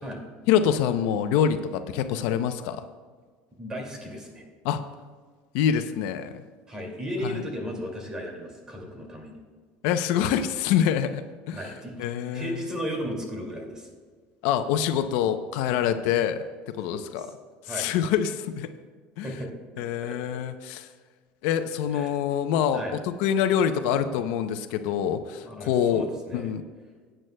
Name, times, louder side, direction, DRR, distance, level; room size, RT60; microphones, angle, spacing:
voice 1, 0.5-2.8 4.6-4.8 5.5-6.4 7.2-7.4 9.8-11.2 11.5-11.6 12.0-12.6 14.4-16.4 16.8-17.3 17.7-18.7 19.2-19.3 19.8-20.9 21.4-22.8 23.2-26.1 26.3-26.6, left 9 dB, 75° left, 9 dB, 0.6 m, -25 dB
voice 2, 3.6-4.4 6.7-9.4 11.5-12.0 12.3-13.9 16.9-17.3 17.6-17.9 19.2-20.2 21.9-22.1 22.7-23.0 25.4-26.5, equal, 20° right, 1 dB, 2.4 m, -35 dB
17.5 x 9.0 x 2.2 m, 1.5 s
cardioid pair, 150°, 4 cm